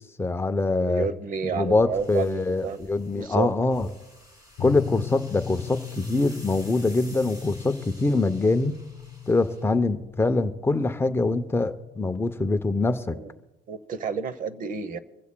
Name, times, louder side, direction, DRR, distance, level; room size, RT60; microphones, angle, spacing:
voice 1, 0.2-1.1 1.5-3.9 4.6-8.8 9.3-13.2, left 3 dB, 15° left, 9 dB, 0.6 m, -24 dB
voice 2, 0.8-2.8 3.1-3.5 13.1-13.3 13.7-15.0, right 6 dB, 45° right, 14 dB, 0.9 m, -30 dB
sound 1, 1.6-10.3, left 1 dB, 20° right, 3.6 m, -50 dB
sound 2, 4.6-12.2, left 10 dB, 60° left, 0.9 m, -39 dB
24.5 x 15.5 x 2.2 m, 1.1 s
cardioid pair, 145°, 19 cm